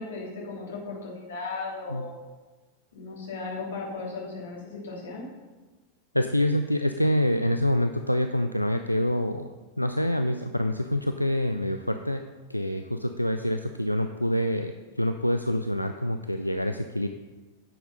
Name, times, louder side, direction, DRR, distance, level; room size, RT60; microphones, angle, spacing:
voice 1, 0.0-2.2 2.9-5.3, left 3 dB, 60° left, -2 dB, 2.9 m, -36 dB
voice 2, 6.1-9.5 9.8-12.2 12.5-17.1, left 1 dB, 90° left, 7 dB, 0.4 m, -26 dB
9.8 x 7.0 x 5.4 m, 1.3 s
figure-of-eight pair, 90°, 0 cm